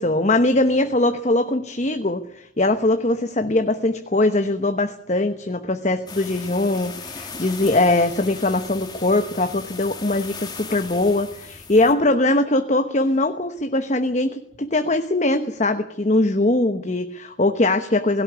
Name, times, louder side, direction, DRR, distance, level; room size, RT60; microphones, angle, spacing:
voice 1, 0.0-18.2, left 2 dB, 35° left, 8 dB, 1.0 m, -21 dB
sound 1, 6.1-11.9, left 4 dB, 20° left, 2.2 m, -37 dB
17.5 x 17.0 x 9.5 m, 0.69 s
head